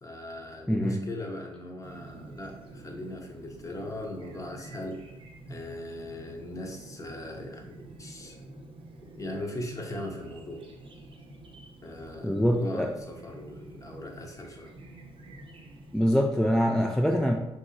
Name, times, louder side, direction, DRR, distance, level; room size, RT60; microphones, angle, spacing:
voice 1, 0.0-5.0 5.4-8.5 9.1-10.7 11.8-14.7, left 1 dB, 25° left, 1 dB, 0.7 m, -39 dB
voice 2, 0.7-1.0 12.2-12.9 15.9-17.3, equal, 5° left, 1 dB, 0.3 m, -24 dB
Chirp tweet, 1.8-16.1, right 2 dB, 45° right, 0.6 m, -48 dB
2.9 x 2.8 x 2.5 m, 0.99 s
supercardioid pair, 60°, 12 cm